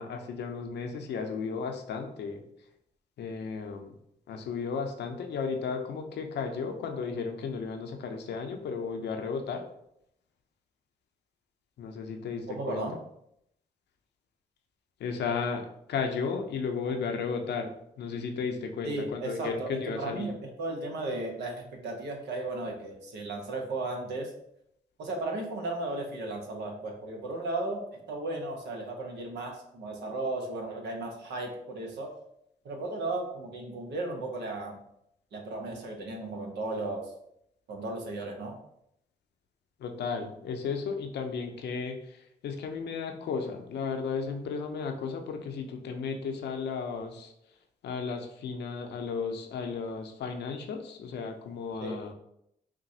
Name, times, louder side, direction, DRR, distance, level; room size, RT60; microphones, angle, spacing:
voice 1, 0.0-2.4 3.2-3.9 4.3-9.6 11.8-12.8 15.0-20.3 39.8-47.3 47.8-52.1, left 5 dB, 75° left, 5 dB, 0.6 m, -34 dB
voice 2, 12.5-12.9 18.8-24.3 25.0-32.1 32.6-34.8 35.3-37.1 37.7-38.6 51.8-52.0, right 2 dB, 75° right, 1 dB, 0.9 m, -35 dB
6.0 x 2.2 x 2.7 m, 0.76 s
hypercardioid pair, 40°, 18 cm